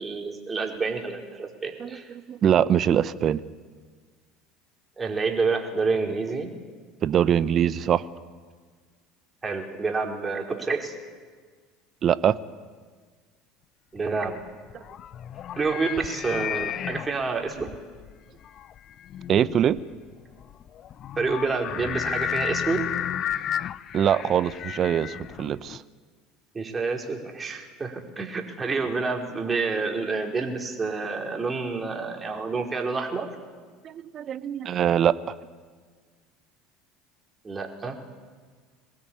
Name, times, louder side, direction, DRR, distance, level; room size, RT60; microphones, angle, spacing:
voice 1, 0.0-2.1 5.0-6.5 9.4-10.9 13.9-14.4 15.6-17.7 21.2-22.8 26.5-33.3 37.4-38.1, right 4 dB, 25° right, 1 dB, 4.5 m, -28 dB
voice 2, 2.3-3.4 7.0-8.0 12.0-12.4 19.3-19.8 23.9-25.8 33.8-35.1, right 9 dB, 45° right, 17 dB, 0.8 m, -22 dB
sound 1, 14.3-25.8, left 10 dB, 45° left, 0.6 m, -33 dB
23.5 x 19.0 x 8.8 m, 1.5 s
hypercardioid pair, 70°, 0 cm